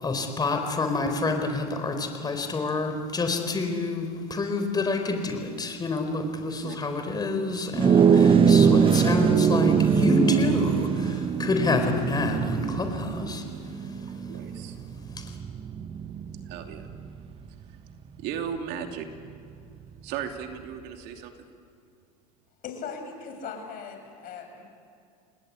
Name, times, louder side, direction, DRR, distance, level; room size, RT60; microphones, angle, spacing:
voice 1, 0.0-13.4 15.2-15.3, left 3 dB, 20° left, 6 dB, 4.2 m, -28 dB
sound 1, 7.7-17.3, right 7 dB, 25° right, 1.0 m, -23 dB
voice 2, 14.3-14.8 16.4-16.9 18.2-19.1 20.0-21.3, right 8 dB, 60° right, 4 dB, 2.8 m, -35 dB
voice 3, 22.6-24.6, left 6 dB, 45° left, 5 dB, 6.5 m, -39 dB
28.5 x 19.5 x 8.6 m, 2.4 s
supercardioid pair, 110°, 19 cm